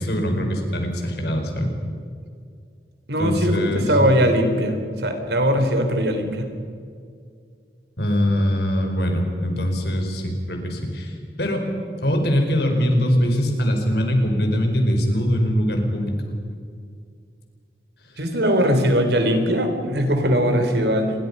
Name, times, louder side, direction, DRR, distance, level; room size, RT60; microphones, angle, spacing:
voice 1, 0.0-1.7 3.2-4.0 8.0-11.7 12.0-16.1 18.1-18.2, equal, 70° left, 3 dB, 4.8 m, -22 dB
voice 2, 3.1-4.8 5.0-6.5 18.2-21.1, equal, 75° right, 6 dB, 3.7 m, -20 dB
28.5 x 22.0 x 5.5 m, 2.3 s
head